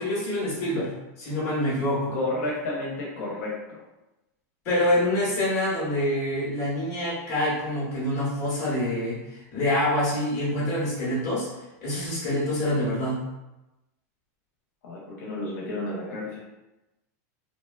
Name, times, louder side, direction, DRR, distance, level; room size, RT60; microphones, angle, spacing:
voice 1, 0.0-2.1 4.6-11.5 11.8-13.3, left 1 dB, 30° left, -6 dB, 1.1 m, -26 dB
voice 2, 2.1-3.8 14.8-16.4, left 2 dB, 70° left, -4 dB, 0.7 m, -31 dB
2.8 x 2.2 x 2.2 m, 0.96 s
supercardioid pair, 175°, 9 cm